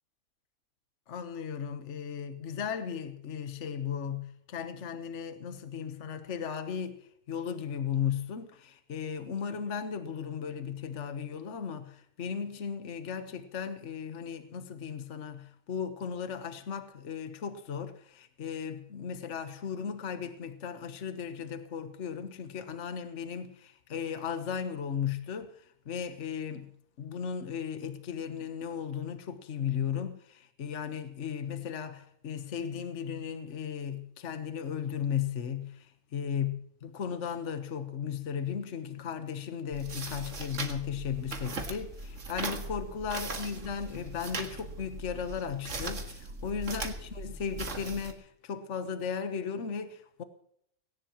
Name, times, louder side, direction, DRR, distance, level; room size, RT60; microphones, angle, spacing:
voice 1, 1.1-26.7 27.0-50.2, left 7 dB, 55° left, 1.4 m, -36 dB
sound 1, 39.7-48.1, right 2 dB, 55° right, 2.1 m, -39 dB
19.0 x 17.5 x 3.0 m
omnidirectional pair, 1.6 m